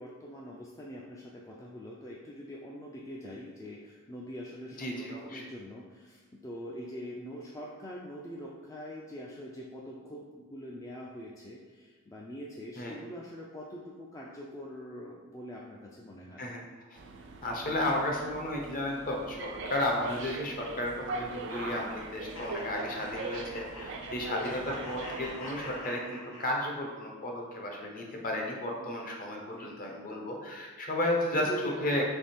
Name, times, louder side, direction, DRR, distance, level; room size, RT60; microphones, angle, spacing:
voice 1, 0.0-16.5 29.4-29.7 31.3-32.1, equal, 15° left, -4 dB, 0.3 m, -43 dB
voice 2, 4.8-5.4 12.8-13.0 16.4-16.6 16.9-17.0 17.4-31.5 31.8-32.1, left 1 dB, 40° left, 0 dB, 0.7 m, -33 dB
sound 1, 17.0-25.8, right 3 dB, 55° right, 0.4 m, -41 dB
sound 2, 22.3-26.9, left 1 dB, 85° left, 0.8 m, -45 dB
3.5 x 3.2 x 4.2 m, 1.4 s
head